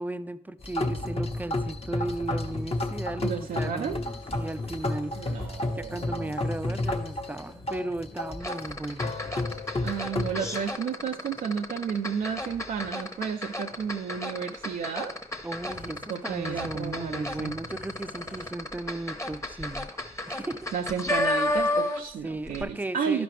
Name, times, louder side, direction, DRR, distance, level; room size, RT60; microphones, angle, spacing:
voice 1, 0.0-5.1 5.7-9.1 15.4-19.9 20.3-20.7 22.2-23.2, right 2 dB, 10° right, 14 dB, 0.4 m, -35 dB
sound 1, 0.6-10.7, left 2 dB, 40° left, 1.0 m, -32 dB
voice 2, 3.2-4.0 5.2-6.3 9.8-15.1 16.1-17.6 20.7-23.2, right 7 dB, 75° right, 4 dB, 0.4 m, -32 dB
sound 2, 3.7-8.4 9.9-10.0 10.2-10.8 11.2-11.7 12.2-12.9 13.2-13.4 14.5-14.6 15.1-15.2 15.4-18.5, left 1 dB, 90° left, 1.5 m, -51 dB
sound 3, 8.4-22.2 22.5-22.6, left 1 dB, 20° left, 1.0 m, -32 dB
11.5 x 5.0 x 3.2 m, 0.71 s
supercardioid pair, 40°, 14 cm